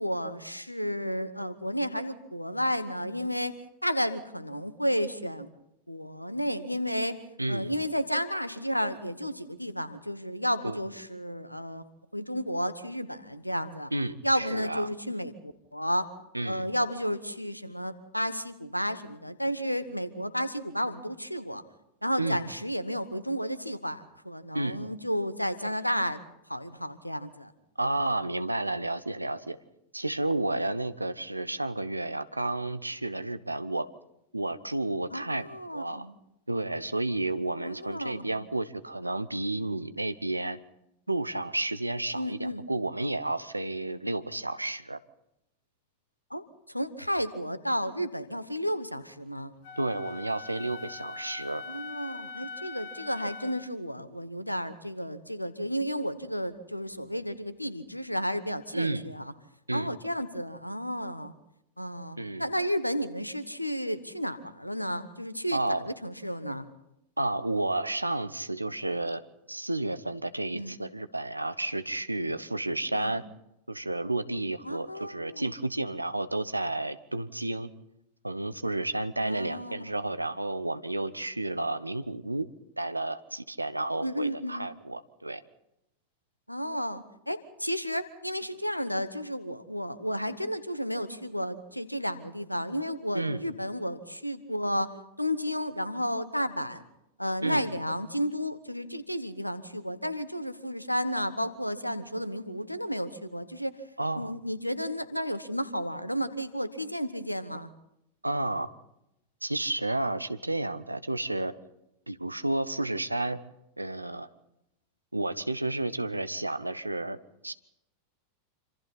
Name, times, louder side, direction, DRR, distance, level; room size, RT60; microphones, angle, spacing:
voice 1, 0.0-5.5 5.9-11.8 12.1-13.9 14.2-16.1 16.4-21.6 22.0-26.2 26.5-27.5 35.1-36.2 37.6-38.5 42.1-42.7 46.3-49.5 51.7-59.3 59.7-61.3 61.8-66.7 70.5-70.7 72.9-73.1 74.6-75.5 79.2-79.9 84.0-84.7 86.5-94.9 95.2-96.8 97.2-103.7 104.1-107.7, equal, 90° left, 15 dB, 1.2 m, -32 dB
voice 2, 7.4-7.7 10.6-10.8 13.9-14.9 16.3-16.6 22.2-22.4 24.5-24.8 27.8-29.6 29.9-33.9 34.3-36.1 36.5-40.6 41.1-45.0 49.8-51.6 58.7-59.1 59.7-59.9 62.2-62.5 65.5-65.9 67.2-69.2 69.5-73.2 73.7-77.7 78.2-82.5 82.8-85.4 93.1-93.4 97.4-97.7 104.0-104.3 108.2-108.7 109.4-111.5 112.1-113.4 113.8-114.3 115.1-117.2 117.4-117.5, right 2 dB, 85° right, 14 dB, 0.9 m, -31 dB
Wind instrument woodwind instrument, 49.6-53.7, left 4 dB, 50° left, 1.6 m, -42 dB
26.5 x 26.0 x 4.2 m, 0.83 s
figure-of-eight pair, 90°, 0 cm